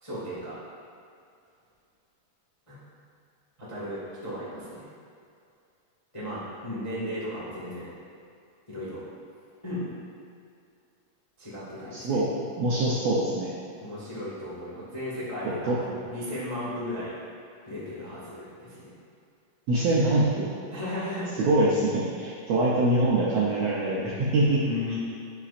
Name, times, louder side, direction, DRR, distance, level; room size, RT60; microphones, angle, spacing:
voice 1, 0.0-0.6 2.7-2.8 3.6-4.9 6.1-7.9 8.7-9.0 9.6-9.9 11.4-12.2 13.8-17.2 17.6-18.9 20.7-21.4 24.5-25.0, left 1 dB, 35° left, -9 dB, 0.4 m, -35 dB
voice 2, 11.9-12.3 12.6-13.5 15.6-15.8 19.7-20.5 21.4-24.6, right 2 dB, 80° right, -6 dB, 1.5 m, -24 dB
11.0 x 6.1 x 2.5 m, 2.4 s
omnidirectional pair, 3.9 m